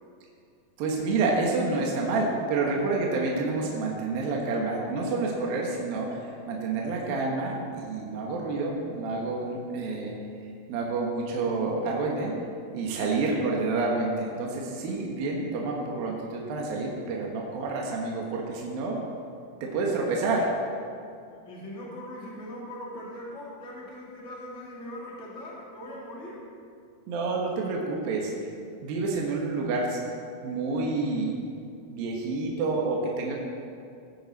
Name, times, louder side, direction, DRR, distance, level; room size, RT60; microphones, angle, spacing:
voice 1, 0.8-10.1 10.7-12.3 12.7-19.0 19.6-20.5 27.1-28.3 28.8-30.1 30.4-31.3 31.9-33.3, right 3 dB, 70° right, -1 dB, 3.1 m, -28 dB
voice 2, 21.3-26.4, left 1 dB, 20° left, -5 dB, 2.5 m, -40 dB
18.0 x 9.5 x 4.1 m, 2.4 s
omnidirectional pair, 4.4 m